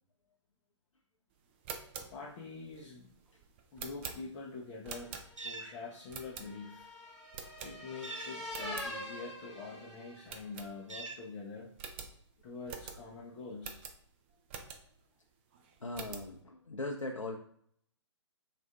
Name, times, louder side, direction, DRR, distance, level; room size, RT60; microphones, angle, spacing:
sound 1, 1.5-5.6 6.1-6.8 7.3-8.1 8.4-8.9 9.4-9.5 9.7-9.8 10.3-11.2 11.4-11.5 11.8-15.1 15.5-16.3, right 6 dB, 25° right, 0.4 m, -46 dB
voice 1, 2.1-3.1 3.7-6.9 7.6-11.7 12.4-13.8, left 4 dB, 25° left, -5 dB, 0.6 m, -45 dB
sound 2, 5.1-10.5, left 1 dB, 5° right, 1.1 m, -45 dB
sound 3, 5.4-5.7 8.0-8.4 10.9-11.3, right 3 dB, 85° right, 0.5 m, -43 dB
voice 2, 15.8-17.4, left 2 dB, 85° left, 2 dB, 0.5 m, -39 dB
6.0 x 2.5 x 2.3 m, 0.63 s
figure-of-eight pair, 125°, 16 cm